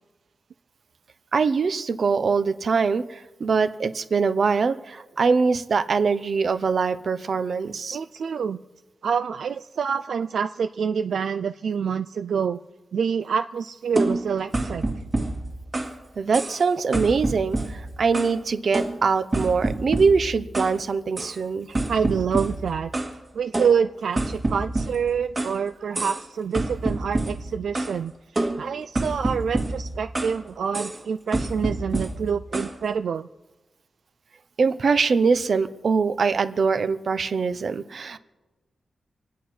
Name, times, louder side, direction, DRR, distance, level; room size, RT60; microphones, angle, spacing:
voice 1, 1.3-8.0 16.2-21.7 34.6-38.2, right 5 dB, 55° right, 12 dB, 0.7 m, -23 dB
voice 2, 7.9-8.6 9.0-12.6 12.9-14.8 21.7-22.9 23.3-28.1 28.6-33.3, right 6 dB, 75° right, 10 dB, 0.4 m, -27 dB
sound 1, 14.0-16.0 16.3-16.7 16.9-18.4 18.7-20.8 21.2-21.4 21.7-23.2 23.5-25.6 25.9-26.3 26.5-28.0 28.4-30.4 30.7-31.0 31.3-32.8, right 2 dB, 30° right, 1.8 m, -28 dB
27.0 x 9.3 x 4.4 m, 1.1 s
wide cardioid pair, 135°, 0 cm